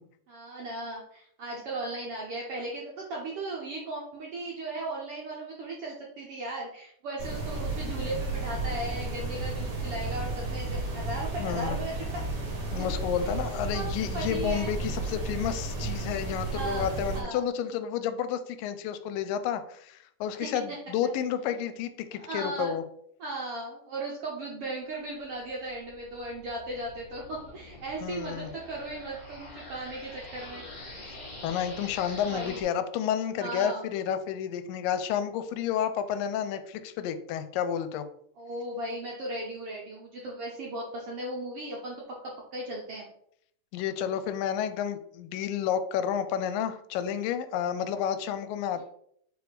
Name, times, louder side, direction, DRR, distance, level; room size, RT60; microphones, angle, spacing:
voice 1, 0.3-12.3 12.8-12.9 13.2-13.3 13.7-14.7 16.5-17.4 20.4-20.5 22.1-22.7 23.2-30.7 32.1-32.6 33.4-33.8 38.4-43.1 48.8-48.9, right 2 dB, 70° right, -3 dB, 1.4 m, -37 dB
sound 1, 7.2-17.2, right 2 dB, 40° right, 1.6 m, -33 dB
voice 2, 11.4-11.8 12.7-22.8 28.0-28.5 31.4-38.0 43.7-48.8, left 9 dB, 85° left, 11 dB, 2.3 m, -31 dB
sound 2, 25.3-32.6, left 2 dB, 20° left, 1.3 m, -46 dB
4.8 x 4.7 x 5.1 m, 0.68 s
omnidirectional pair, 3.8 m